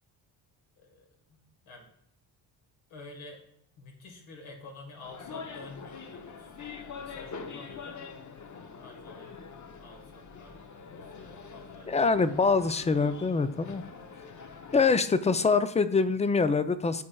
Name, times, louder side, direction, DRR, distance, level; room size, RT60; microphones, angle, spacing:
voice 1, 0.8-1.9 2.9-3.4 3.8-8.1 8.6-9.3 9.8-10.6 10.9-11.9, left 2 dB, 70° left, 0 dB, 1.7 m, -49 dB
sound 1, 5.0-14.9, left 5 dB, 35° left, 0.8 m, -44 dB
voice 2, 11.9-13.8 14.7-17.0, left 4 dB, 15° left, 12 dB, 0.3 m, -24 dB
11.5 x 4.2 x 2.3 m, 0.72 s
supercardioid pair, 60°, 50 cm